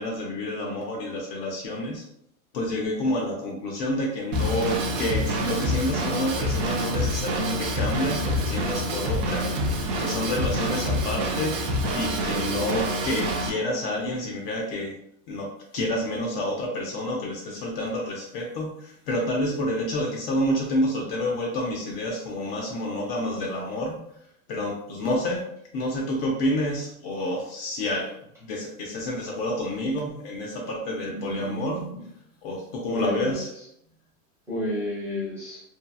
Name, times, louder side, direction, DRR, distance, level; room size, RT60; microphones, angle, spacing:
voice 1, 0.0-2.0 2.5-14.9 15.3-24.1 24.5-25.4 25.7-28.1 28.4-31.9 32.4-33.5, left 1 dB, 45° left, -1 dB, 0.6 m, -29 dB
Drum kit / Drum, 4.3-13.5, equal, 40° right, 0.4 m, -27 dB
voice 2, 31.1-31.9 32.9-33.4 34.5-35.6, left 1 dB, 5° right, -8 dB, 0.7 m, -31 dB
2.8 x 2.2 x 2.3 m, 0.73 s
supercardioid pair, 150°, 44 cm